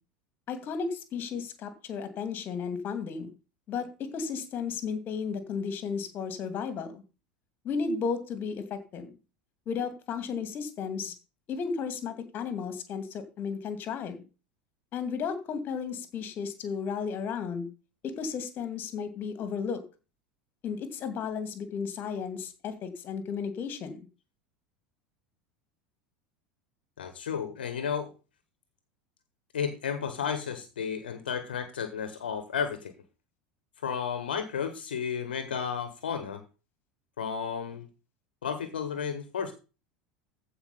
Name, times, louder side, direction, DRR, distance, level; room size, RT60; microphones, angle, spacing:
voice 1, 0.5-3.3 3.7-7.0 7.6-9.1 9.7-11.1 11.5-14.2 14.9-17.7 18.0-19.8 20.6-24.1, left 6 dB, 40° left, 10 dB, 2.3 m, -34 dB
voice 2, 27.0-28.1 29.5-32.9 33.8-36.4 37.2-37.9 38.4-39.5, left 7 dB, 70° left, 10 dB, 1.3 m, -33 dB
14.5 x 5.0 x 5.4 m, 0.32 s
figure-of-eight pair, 75°, 5 cm